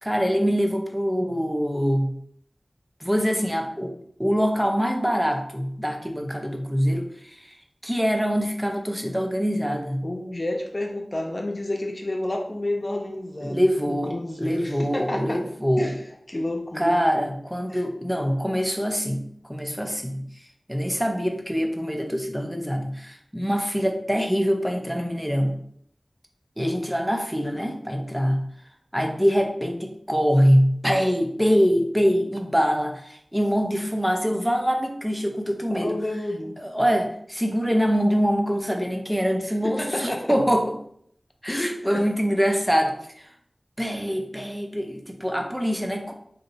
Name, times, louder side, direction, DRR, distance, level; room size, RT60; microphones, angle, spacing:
voice 1, 0.0-2.1 3.0-3.9 4.2-7.5 7.8-10.0 13.4-15.9 16.8-20.2 20.7-25.6 26.6-28.4 28.9-36.0 36.6-40.7 41.4-43.3 43.8-46.1, equal, 5° right, 3 dB, 0.5 m, -24 dB
voice 2, 10.0-15.4 15.8-15.9 16.3-17.0 17.7-17.8 35.7-36.5 39.8-40.3 41.5-42.0, left 1 dB, 40° left, 1 dB, 0.7 m, -30 dB
2.7 x 2.1 x 3.9 m, 0.67 s
wide cardioid pair, 45°, 0 cm